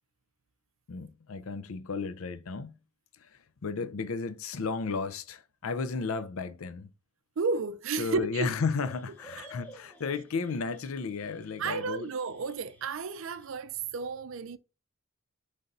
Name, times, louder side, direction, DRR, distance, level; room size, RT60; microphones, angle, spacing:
voice 1, 0.9-2.8 3.6-6.9 8.0-12.1, left 4 dB, 70° left, 0.5 m, -33 dB
voice 2, 7.4-8.5 9.4-9.5 11.6-14.6, right 4 dB, 65° right, 0.4 m, -32 dB
sound 1, 8.5-13.5, left 1 dB, 10° left, 0.8 m, -54 dB
4.0 x 3.3 x 3.9 m
head